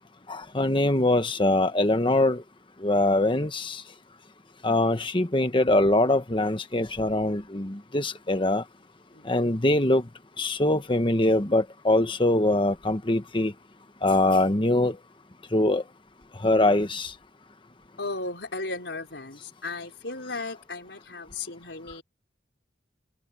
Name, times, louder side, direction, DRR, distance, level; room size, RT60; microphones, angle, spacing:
voice 1, 0.3-2.4 2.8-3.8 4.6-8.6 9.2-10.1 10.4-13.5 14.0-15.0 15.5-15.8 16.4-17.1, left 2 dB, 25° left, 1.2 m, -23 dB
voice 2, 9.1-9.5 18.0-22.0, left 3 dB, 70° left, 4.7 m, -35 dB
head